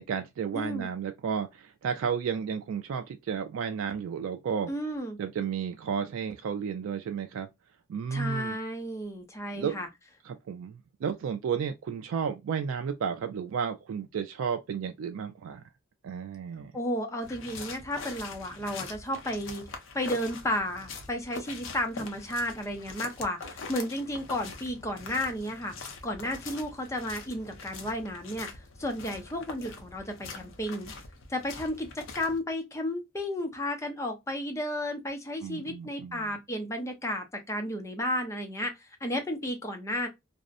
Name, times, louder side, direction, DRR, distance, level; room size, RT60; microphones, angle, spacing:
voice 1, 0.0-4.7 5.2-7.5 7.9-8.6 9.5-9.8 10.2-15.6 16.0-16.7 35.4-36.3, right 7 dB, 85° right, 0.3 m, -32 dB
voice 2, 0.5-0.9 4.7-5.2 8.1-9.9 16.7-19.7 19.9-30.9 31.3-40.1, left 1 dB, 15° left, 0.5 m, -33 dB
sound 1, 17.2-32.4, left 4 dB, 75° left, 0.6 m, -43 dB
2.5 x 2.0 x 2.4 m
head